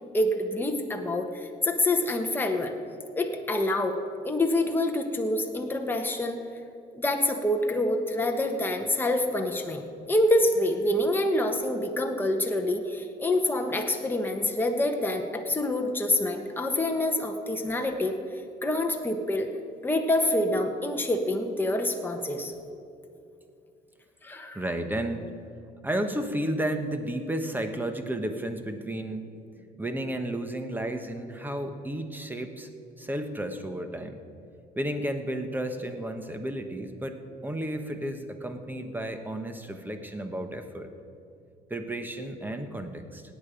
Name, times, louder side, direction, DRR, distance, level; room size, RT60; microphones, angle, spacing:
voice 1, 0.1-2.7 3.1-4.0 4.2-6.4 6.9-9.8 10.1-18.2 18.6-19.5 19.8-22.5 24.2-24.6, left 1 dB, 10° left, 3 dB, 1.3 m, -26 dB
voice 2, 24.5-25.3 25.8-29.3 29.6-32.7 33.0-34.2 34.8-40.9 41.7-43.2, right 1 dB, 10° right, 7 dB, 1.1 m, -32 dB
17.0 x 9.2 x 5.1 m, 2.5 s
cardioid pair, 110°, 17 cm